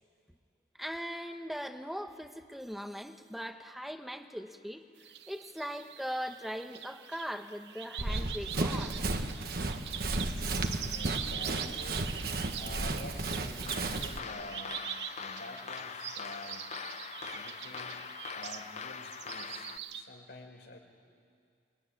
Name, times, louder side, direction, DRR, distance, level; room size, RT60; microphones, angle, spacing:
voice 1, 0.8-4.8 5.3-9.0, equal, ahead, 6 dB, 1.2 m, -40 dB
sound 1, 5.0-20.0, right 9 dB, 75° right, 1.0 m, -43 dB
Run, 8.0-14.2, right 2 dB, 60° right, 1.5 m, -34 dB
voice 2, 10.7-12.1 12.5-14.9 15.2-16.6 17.3-18.0 18.3-20.8, left 1 dB, 80° left, 1 dB, 4.8 m, -48 dB
sound 2, 13.7-19.8, left 6 dB, 40° left, 0.7 m, -43 dB
24.5 x 23.0 x 9.8 m, 2.2 s
head